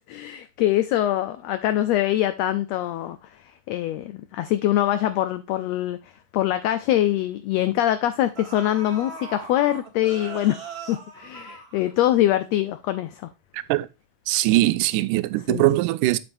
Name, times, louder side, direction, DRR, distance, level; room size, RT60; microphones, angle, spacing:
voice 1, 0.0-3.2 3.7-6.0 6.3-10.6 10.9-13.2 15.5-15.7, left 13 dB, 85° left, 1.5 m, -23 dB
sound 1, 6.2-6.3 6.7-6.8 7.9-8.0 8.3-12.3 12.6-12.7, right 3 dB, 55° right, 0.6 m, -39 dB
voice 2, 13.5-13.9 14.3-16.2, right 17 dB, 85° right, 2.1 m, -21 dB
7.8 x 7.3 x 2.6 m
omnidirectional pair, 3.5 m